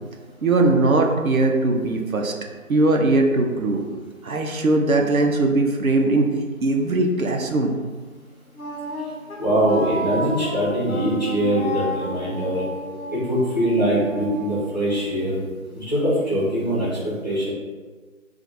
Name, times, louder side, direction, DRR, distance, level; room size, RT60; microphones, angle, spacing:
voice 1, 0.4-2.3 2.7-3.8 4.2-6.3 6.6-7.7, right 2 dB, 75° right, 2 dB, 0.6 m, -20 dB
Wind instrument woodwind instrument, 8.5-15.5, equal, 70° left, 1.1 m, -33 dB
voice 2, 9.4-12.6 13.1-15.4 15.7-17.5, right 1 dB, 30° left, -9 dB, 1.0 m, -22 dB
2.5 x 2.5 x 4.1 m, 1.4 s
figure-of-eight pair, 170°, 43 cm